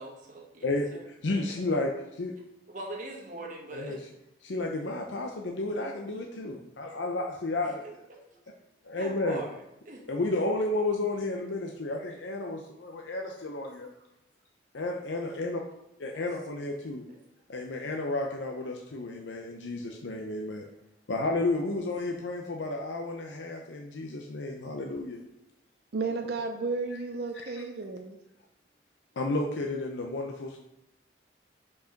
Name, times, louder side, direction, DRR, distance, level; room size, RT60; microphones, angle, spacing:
voice 1, 0.0-1.1 2.7-4.0 7.8-8.4 8.9-9.6 9.8-10.0 16.1-16.2 16.5-16.6, right 1 dB, 45° right, -1 dB, 1.4 m, -42 dB
voice 2, 0.6-2.3 3.7-4.0 4.4-7.9 8.8-9.4 10.1-13.9 14.7-15.6 16.0-17.0 17.5-20.6 21.1-25.2 27.3-27.5 29.2-30.6, left 2 dB, 90° left, 1 dB, 0.7 m, -32 dB
voice 3, 25.9-28.2, right 4 dB, 60° right, 4 dB, 0.5 m, -33 dB
5.3 x 4.8 x 5.1 m, 0.82 s
head